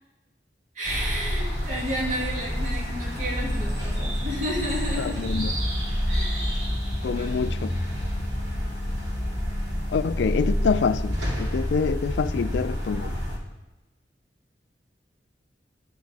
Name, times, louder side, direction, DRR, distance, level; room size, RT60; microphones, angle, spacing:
voice 1, 0.8-5.4 6.0-6.6 7.1-7.4, equal, 45° right, 2.3 m, -32 dB
sound 1, 0.8-13.4, equal, 75° right, 2.4 m, -28 dB
sound 2, 3.4-10.4, left 2 dB, 45° left, 0.8 m, -44 dB
voice 2, 5.0-5.5 7.0-7.7 9.9-13.1, left 5 dB, 80° left, 0.4 m, -26 dB
9.6 x 4.2 x 6.7 m
head